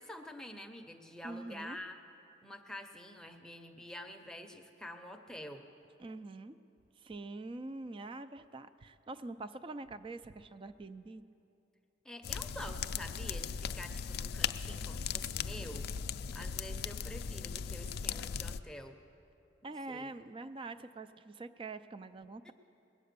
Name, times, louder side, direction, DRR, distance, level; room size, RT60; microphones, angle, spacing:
voice 1, 0.0-2.0 2.4-5.7 12.0-15.9 16.3-19.0 19.9-20.1 22.4-22.5, left 1 dB, 5° left, 4 dB, 0.7 m, -47 dB
voice 2, 1.2-1.8 6.0-6.6 7.0-11.2 19.6-22.5, right 2 dB, 30° right, 12 dB, 0.4 m, -45 dB
sound 1, 12.2-18.6, left 7 dB, 55° left, 0.3 m, -38 dB
21.0 x 8.6 x 6.7 m, 2.8 s
head